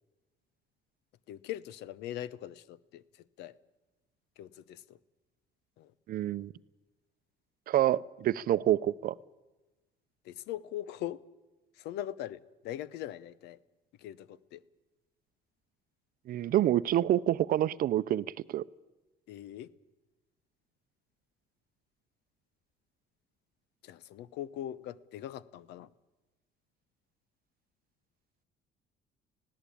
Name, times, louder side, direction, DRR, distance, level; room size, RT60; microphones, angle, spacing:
voice 1, 1.3-3.0 3.4-3.6 4.4-5.0 5.8-5.9 10.2-11.2 11.8-13.6 14.0-14.6 19.3-19.7 23.8-25.9, left 12 dB, 85° left, 0.8 m, -41 dB
voice 2, 6.1-6.5 7.7-9.1 16.3-18.6, right 12 dB, 60° right, 0.6 m, -27 dB
20.5 x 16.5 x 8.5 m
cardioid pair, 110°, 17 cm